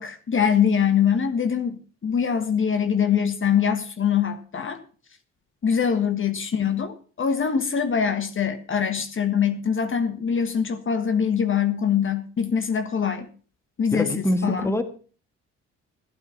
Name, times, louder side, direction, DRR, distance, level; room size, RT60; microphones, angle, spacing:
voice 1, 0.0-4.8 5.6-13.3 13.8-14.1 14.4-14.7, left 7 dB, 40° left, 1.5 m, -23 dB
voice 2, 13.9-14.8, left 1 dB, 10° left, 1.7 m, -24 dB
15.0 x 9.0 x 5.8 m
cardioid pair, 90°, 30 cm